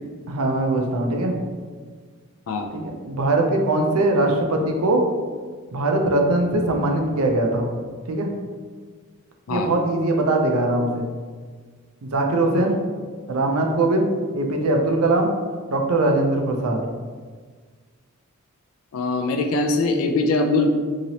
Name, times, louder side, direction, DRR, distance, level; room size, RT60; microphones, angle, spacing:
voice 1, 0.3-1.3 2.7-5.0 5.7-7.7 8.1-8.3 9.5-11.1 12.0-12.8 13.3-14.1 14.3-15.3 15.7-16.8, right 2 dB, 75° right, 2 dB, 0.5 m, -21 dB
voice 2, 18.9-20.7, left 3 dB, 70° left, 4 dB, 0.4 m, -22 dB
2.9 x 2.8 x 2.7 m, 1.5 s
head